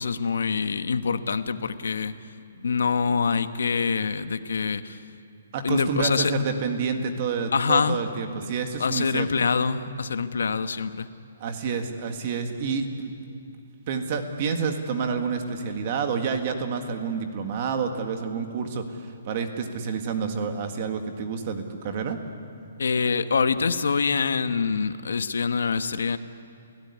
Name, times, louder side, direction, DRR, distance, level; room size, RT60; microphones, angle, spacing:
voice 1, 0.0-2.1 2.5-5.0 5.6-6.3 7.5-8.0 8.8-11.1 22.8-26.2, left 5 dB, 85° left, 10 dB, 1.3 m, -25 dB
voice 2, 5.5-9.3 11.4-13.1 13.9-22.2, right 5 dB, 25° right, 6 dB, 1.7 m, -29 dB
30.0 x 17.0 x 9.7 m, 2.6 s
hypercardioid pair, 180°, 0 cm